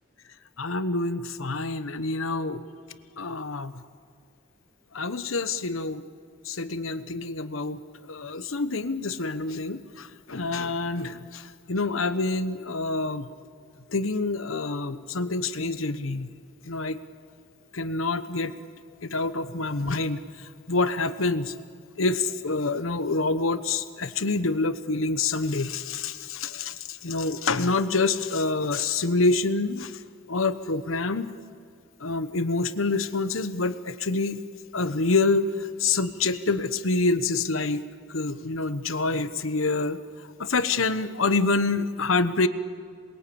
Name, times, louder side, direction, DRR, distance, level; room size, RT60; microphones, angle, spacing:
voice 1, 0.6-2.6 3.2-3.8 4.9-6.0 6.4-13.3 13.9-16.3 16.6-17.0 17.7-18.5 19.0-21.5 22.0-30.0 30.3-31.3 32.0-34.4 34.7-40.0 40.4-42.5, left 3 dB, 80° left, 12 dB, 1.1 m, -27 dB
27.0 x 21.5 x 8.7 m, 2.3 s
head